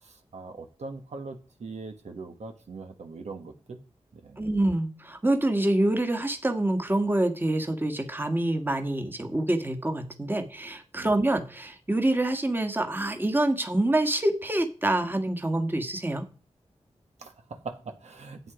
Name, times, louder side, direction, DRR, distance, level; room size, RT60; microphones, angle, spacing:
voice 1, 0.0-3.8 4.1-4.4 10.9-11.2 17.2-18.4, right 3 dB, 75° right, 5 dB, 1.5 m, -41 dB
voice 2, 4.4-16.2, right 1 dB, 15° right, 6 dB, 1.6 m, -26 dB
11.0 x 8.2 x 5.0 m, 0.35 s
wide cardioid pair, 85°, 12 cm